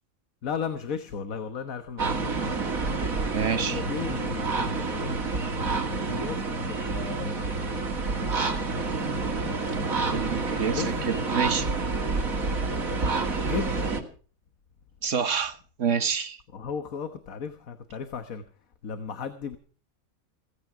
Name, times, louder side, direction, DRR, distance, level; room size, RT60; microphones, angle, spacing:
voice 1, 0.4-2.5 3.4-5.2 5.7-7.9 10.7-11.2 13.3-13.8 16.5-18.4 18.8-19.6, left 6 dB, 80° left, 1.7 m, -36 dB
sound 1, 2.0-14.0, right 3 dB, 75° right, 2.8 m, -28 dB
voice 2, 3.3-3.8 10.1-11.7 15.0-16.4, right 6 dB, 60° right, 1.7 m, -28 dB
17.0 x 15.5 x 4.8 m
omnidirectional pair, 1.4 m